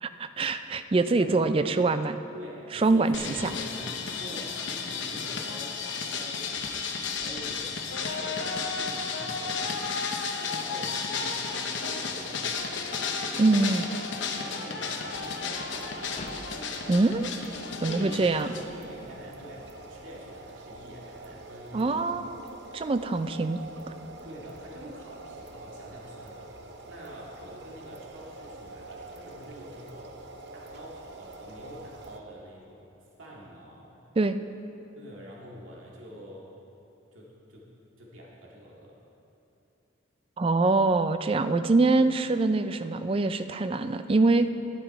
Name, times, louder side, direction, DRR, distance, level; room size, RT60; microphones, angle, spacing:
voice 1, 0.0-2.2 2.7-3.1 3.4-3.5 13.4-13.8 16.9-17.3 17.8-18.5 21.7-22.4 22.7-23.6 34.2-34.4 40.4-44.5, right 3 dB, 25° right, 10 dB, 0.3 m, -24 dB
voice 2, 2.3-5.8 6.1-13.2 13.4-13.9 14.3-16.0 17.8-22.0 24.2-32.8 33.2-34.0 34.9-36.5 37.1-37.6 38.0-39.0, equal, 85° right, -4 dB, 2.1 m, -46 dB
sound 1, 3.1-18.6, left 5 dB, 65° left, 0.9 m, -33 dB
sound 2, 12.3-17.0, left 2 dB, 30° left, 0.6 m, -48 dB
sound 3, 15.0-32.2, right 2 dB, 55° right, 0.7 m, -45 dB
11.0 x 10.0 x 4.8 m, 2.8 s
head